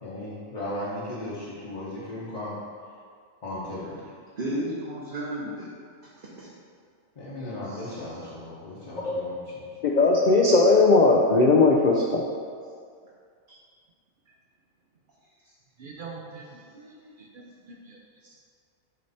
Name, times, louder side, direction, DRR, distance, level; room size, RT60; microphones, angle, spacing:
voice 1, 0.0-2.6 3.4-4.1 7.1-9.8, left 1 dB, 30° left, -9 dB, 1.0 m, -36 dB
voice 2, 4.3-5.7 6.4-6.5 7.6-8.0 16.6-17.2, right 1 dB, 40° right, -8 dB, 1.0 m, -34 dB
voice 3, 9.8-12.2, left 3 dB, 70° left, -2 dB, 0.4 m, -18 dB
voice 4, 15.8-16.6 17.2-18.0 18.2-18.4, right 4 dB, 60° right, -1 dB, 0.5 m, -43 dB
8.6 x 3.2 x 4.1 m, 2.1 s
omnidirectional pair, 1.5 m